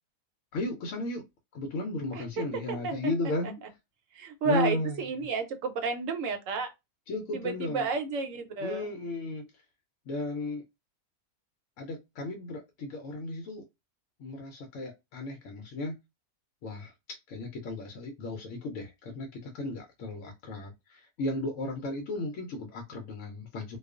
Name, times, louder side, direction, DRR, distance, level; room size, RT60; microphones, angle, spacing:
voice 1, 0.5-1.3 1.5-3.5 4.4-4.9 7.1-7.9 8.6-9.5 10.1-10.6 11.8-13.7 14.2-16.0 16.6-16.9 17.3-23.8, left 2 dB, 65° left, 0.9 m, -35 dB
voice 2, 2.1-3.1 3.4-3.5 4.1-6.7 7.3-8.9, right 5 dB, 65° right, 0.9 m, -32 dB
2.3 x 2.3 x 2.3 m
omnidirectional pair, 1.5 m